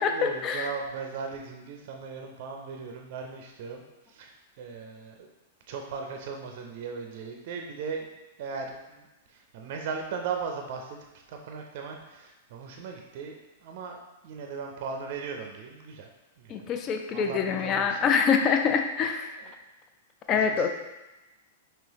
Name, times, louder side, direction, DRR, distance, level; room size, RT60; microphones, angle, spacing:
voice 1, 0.0-5.3 5.7-11.0 11.3-16.1 16.4-16.7 17.1-18.2 19.1-19.5 20.3-20.7, right 5 dB, 45° right, 2 dB, 0.5 m, -38 dB
voice 2, 16.5-19.3 20.3-20.7, left 6 dB, 30° left, 5 dB, 0.4 m, -25 dB
5.4 x 2.9 x 2.9 m, 1.0 s
figure-of-eight pair, 100°, 0 cm